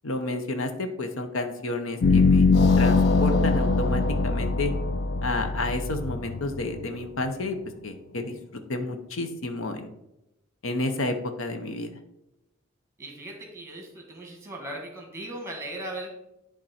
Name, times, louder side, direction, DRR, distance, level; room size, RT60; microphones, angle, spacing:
voice 1, 0.0-2.5 2.8-4.7 5.2-7.6 7.8-9.9 10.6-12.0, left 2 dB, 75° left, 7 dB, 0.8 m, -30 dB
sound 1, 2.0-7.2, left 3 dB, 50° left, 0.4 m, -22 dB
voice 2, 13.0-16.1, right 1 dB, 15° right, 1 dB, 1.5 m, -38 dB
10.5 x 3.7 x 4.3 m, 0.88 s
head